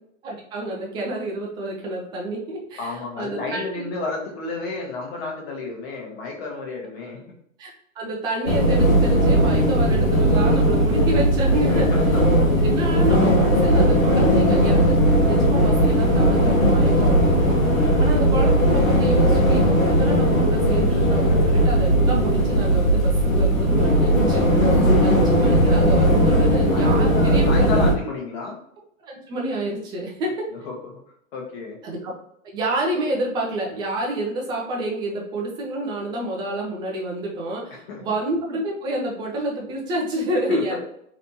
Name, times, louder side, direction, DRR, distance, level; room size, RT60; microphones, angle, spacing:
voice 1, 0.2-3.8 7.6-11.9 12.6-17.6 18.0-24.4 25.0-27.6 29.1-30.5 31.8-32.1 32.5-40.8, right 1 dB, 10° right, -2 dB, 0.4 m, -28 dB
voice 2, 2.8-7.2 11.7-12.3 17.7-18.3 26.7-28.6 30.5-30.7 31.3-31.8 37.9-38.0 40.5-40.8, left 4 dB, 50° left, -1 dB, 1.2 m, -31 dB
sound 1, 8.5-27.9, equal, 85° left, 0.9 m, -18 dB
3.3 x 2.9 x 2.7 m, 0.73 s
figure-of-eight pair, 110°, 40 cm